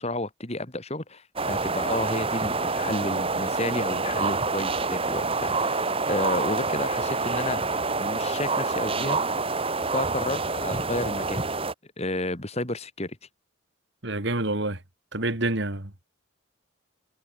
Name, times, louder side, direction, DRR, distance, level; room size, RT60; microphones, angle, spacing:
voice 1, 0.0-9.2 9.9-11.5 12.0-13.2, left 2 dB, 30° left, 3.2 m, -31 dB
sound 1, 1.4-11.7, right 3 dB, 25° right, 2.3 m, -27 dB
voice 2, 14.0-14.8 15.1-15.9, right 2 dB, 55° right, 3.1 m, -27 dB
head